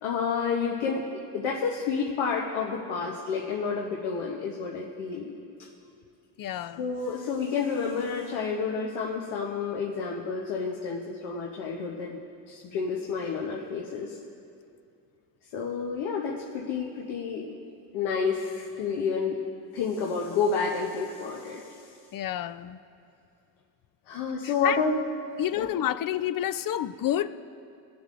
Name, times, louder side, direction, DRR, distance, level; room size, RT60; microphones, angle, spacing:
voice 1, 0.0-5.4 6.8-12.2 12.5-14.2 15.5-17.6 17.9-19.4 19.7-21.8 24.1-25.0 25.5-25.7, left 5 dB, 80° left, -1 dB, 1.0 m, -30 dB
voice 2, 6.4-6.8 22.1-22.8 24.6-24.8 25.4-27.3, left 11 dB, 45° left, 13 dB, 0.5 m, -29 dB
17.5 x 7.0 x 2.5 m, 2.4 s
supercardioid pair, 55°, 47 cm